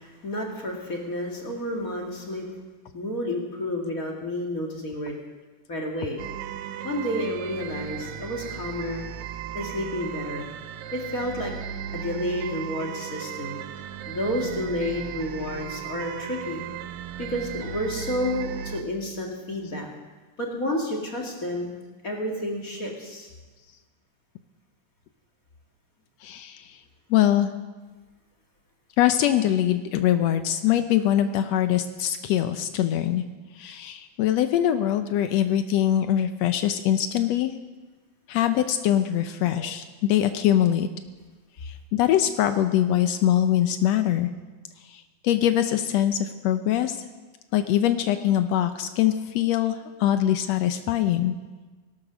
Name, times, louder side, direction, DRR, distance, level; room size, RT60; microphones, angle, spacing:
voice 1, 0.0-2.5 2.9-5.1 5.7-6.2 6.8-9.0 9.5-10.5 10.9-11.5 11.9-13.6 14.1-16.7 17.2-19.9 20.4-21.7 22.0-23.3 39.5-39.7, left 1 dB, 30° left, 0 dB, 1.9 m, -30 dB
sound 1, 6.2-18.8, right 9 dB, 85° right, 2.6 m, -36 dB
voice 2, 26.2-26.8 27.1-27.5 29.0-33.2 33.6-37.5 38.3-40.9 41.6-44.3 44.9-47.0 47.5-51.3, left 11 dB, 90° left, 8 dB, 1.4 m, -23 dB
18.0 x 13.0 x 6.2 m, 1.3 s
omnidirectional pair, 3.9 m